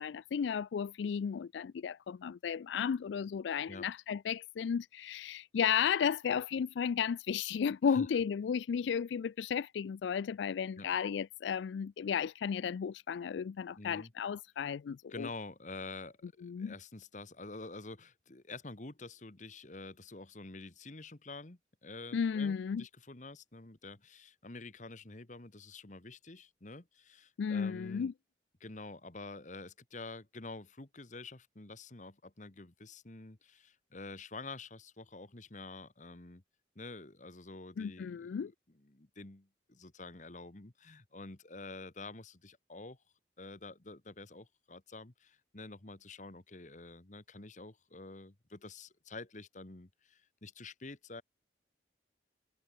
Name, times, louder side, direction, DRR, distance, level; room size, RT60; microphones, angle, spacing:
voice 1, 0.0-15.3 16.4-16.7 22.1-22.8 27.4-28.1 37.8-38.5, left 7 dB, 80° left, 0.3 m, -34 dB
voice 2, 13.8-14.1 15.1-28.1 28.6-36.4 36.7-43.0 43.4-51.2, left 3 dB, 40° left, 1.4 m, -48 dB
head